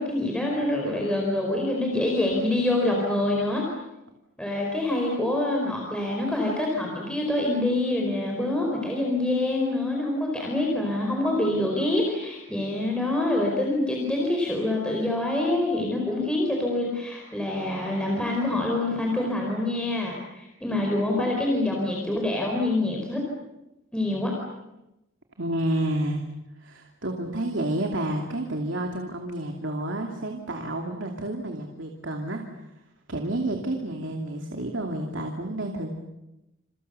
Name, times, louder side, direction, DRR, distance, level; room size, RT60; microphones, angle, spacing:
voice 1, 0.0-3.6 4.4-23.2 23.9-24.3, left 1 dB, 5° left, -1 dB, 4.7 m, -26 dB
voice 2, 25.4-26.2 26.6-32.4 33.1-35.9, right 1 dB, 65° right, 3 dB, 2.7 m, -30 dB
29.0 x 28.5 x 6.9 m, 0.94 s
head